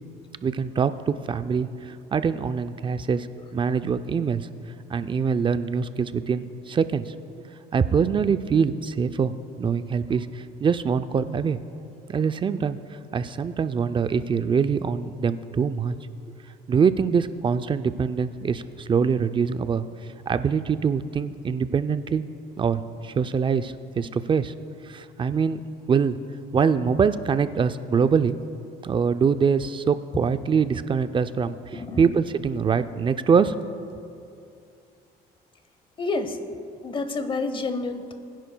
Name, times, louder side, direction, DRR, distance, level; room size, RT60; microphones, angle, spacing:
voice 1, 0.4-3.3 3.5-4.5 4.9-7.1 7.7-9.3 9.6-11.6 12.1-12.8 13.1-16.0 16.7-19.8 20.3-22.2 22.6-24.5 24.9-25.6 25.9-26.2 26.5-28.4 28.8-33.5, right 6 dB, 30° right, 11 dB, 0.4 m, -24 dB
voice 2, 31.7-32.1 36.0-36.4 36.8-38.1, left 3 dB, 30° left, 8 dB, 0.9 m, -29 dB
21.0 x 10.5 x 2.3 m, 2.5 s
cardioid pair, 110°, 17 cm